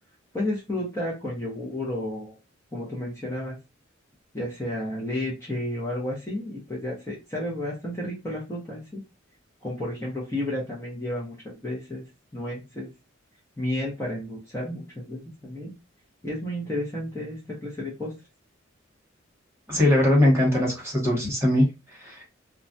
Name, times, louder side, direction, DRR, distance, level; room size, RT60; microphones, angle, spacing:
voice 1, 0.3-2.3 2.7-3.6 4.3-9.0 9.6-12.0 12.3-12.9 13.6-15.7 16.2-18.1, left 1 dB, 15° left, -5 dB, 0.7 m, -32 dB
voice 2, 19.7-21.6 22.0-22.2, left 1 dB, 15° right, -3 dB, 1.1 m, -21 dB
2.3 x 2.1 x 2.6 m, 0.26 s
head